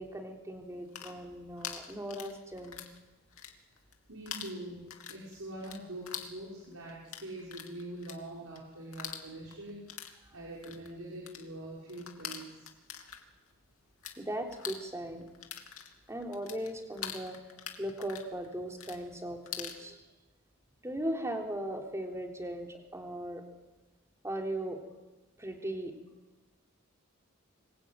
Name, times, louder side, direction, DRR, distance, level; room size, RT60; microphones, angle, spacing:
voice 1, 0.0-2.8 14.2-15.3 16.1-17.4 17.8-20.0 20.8-23.4 24.2-24.8 25.4-26.0, right 1 dB, 15° right, 2 dB, 3.6 m, -38 dB
sound 1, 0.7-3.0 3.3-4.0 4.3-14.2 14.5-19.8, left 9 dB, 80° left, 2.9 m, -44 dB
voice 2, 4.1-9.8 10.0-12.6, right 1 dB, 80° right, -4 dB, 5.6 m, -44 dB
25.0 x 22.5 x 9.3 m, 1.1 s
head